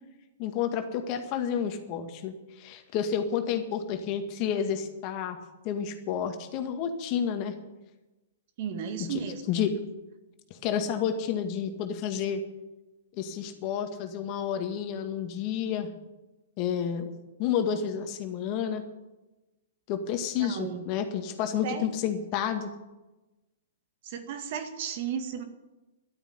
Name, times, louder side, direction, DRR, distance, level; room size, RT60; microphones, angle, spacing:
voice 1, 0.4-5.4 5.6-7.5 9.1-9.2 9.5-9.7 10.5-12.4 13.2-15.9 16.6-17.1 17.4-18.8 19.9-22.7, left 8 dB, 40° left, 6 dB, 2.0 m, -30 dB
voice 2, 8.6-9.6 20.4-20.8 21.6-21.9 24.0-25.4, right 7 dB, 50° right, 6 dB, 2.0 m, -34 dB
12.5 x 9.1 x 9.5 m, 1.1 s
hypercardioid pair, 115°, 0 cm